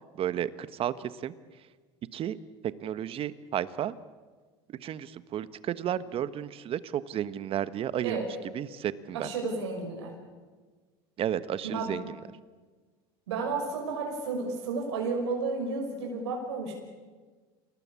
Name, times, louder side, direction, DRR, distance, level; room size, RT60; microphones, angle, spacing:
voice 1, 0.1-1.3 2.1-2.4 2.6-3.9 4.8-8.3 8.5-9.3 11.2-12.1, right 10 dB, 40° right, 14 dB, 1.3 m, -32 dB
voice 2, 9.1-10.1 11.6-11.9 13.3-16.7, right 4 dB, 85° right, 1 dB, 6.0 m, -32 dB
28.5 x 19.0 x 8.4 m, 1.4 s
supercardioid pair, 100°, 14 cm